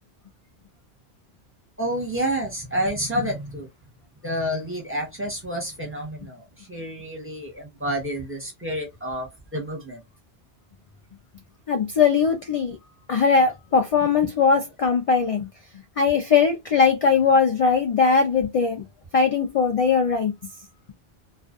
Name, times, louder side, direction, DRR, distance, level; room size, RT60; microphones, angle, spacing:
voice 1, 1.8-3.7 4.2-10.0, equal, 15° right, 0.9 m, -29 dB
voice 2, 11.7-12.8 13.1-15.5 16.0-18.8 19.1-20.3, left 5 dB, 60° left, 0.3 m, -20 dB
2.4 x 2.3 x 2.3 m
omnidirectional pair, 1.1 m